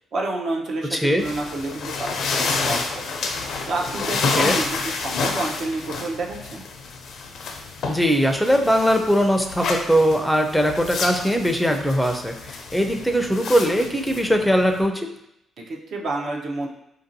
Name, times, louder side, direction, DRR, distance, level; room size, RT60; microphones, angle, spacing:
voice 1, 0.1-3.0 3.7-6.6 15.6-16.7, right 2 dB, 60° right, 0 dB, 0.7 m, -29 dB
voice 2, 0.9-1.2 4.4-4.6 7.9-15.1, equal, ahead, 3 dB, 0.5 m, -20 dB
sound 1, 1.2-14.9, left 4 dB, 70° left, 0.4 m, -29 dB
5.0 x 2.6 x 2.6 m, 0.80 s
cardioid pair, 90°, 0 cm